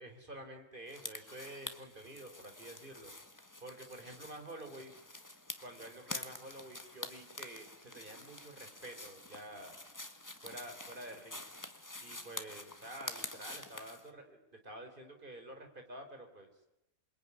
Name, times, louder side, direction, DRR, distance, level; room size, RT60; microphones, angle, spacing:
voice 1, 0.0-3.1 3.6-4.9 5.6-9.8 10.4-11.4 12.0-14.4 14.6-16.5, right 1 dB, 35° right, 5 dB, 4.0 m, -49 dB
sound 1, 0.9-14.1, left 2 dB, 15° left, 1.5 m, -47 dB
27.5 x 22.0 x 9.8 m, 0.88 s
omnidirectional pair, 1.5 m